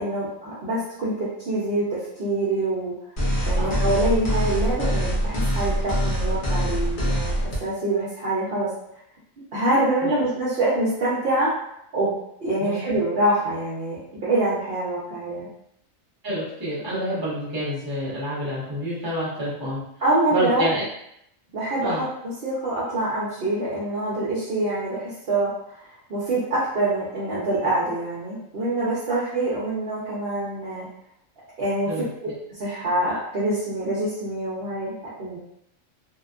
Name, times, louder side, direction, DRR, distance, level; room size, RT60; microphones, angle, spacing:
voice 1, 0.0-2.9 3.5-8.7 9.5-11.5 11.9-12.1 12.4-15.5 20.0-20.7 21.5-30.9 31.6-31.9 32.6-35.4, right 1 dB, 55° right, -9 dB, 0.9 m, -25 dB
sound 1, 3.2-7.6, equal, 45° left, 0.7 m, -24 dB
voice 2, 16.2-19.8 20.3-20.8 21.8-22.0 29.1-29.2 31.9-32.3, equal, 20° right, -9 dB, 1.0 m, -28 dB
2.8 x 2.2 x 2.4 m, 0.76 s
omnidirectional pair, 1.4 m